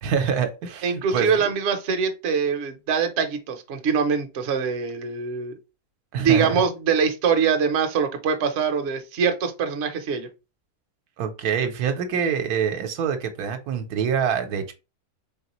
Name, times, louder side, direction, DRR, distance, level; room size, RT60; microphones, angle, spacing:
voice 1, 0.0-1.5 6.1-6.6 11.2-14.7, right 7 dB, 75° right, 1.1 m, -25 dB
voice 2, 0.8-5.5 6.2-10.3, right 6 dB, 55° right, 0.8 m, -23 dB
3.8 x 3.5 x 2.9 m
omnidirectional pair, 1.7 m